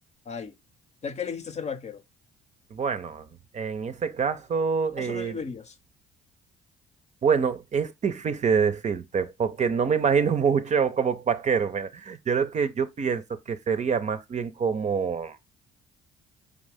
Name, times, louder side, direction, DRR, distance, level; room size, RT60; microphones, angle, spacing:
voice 1, 1.0-2.0 5.0-5.8, left 6 dB, 35° left, 0.6 m, -35 dB
voice 2, 2.7-3.3 3.5-5.4 7.2-15.4, right 6 dB, 40° right, 0.6 m, -26 dB
4.8 x 2.6 x 3.4 m
hypercardioid pair, 55°, 19 cm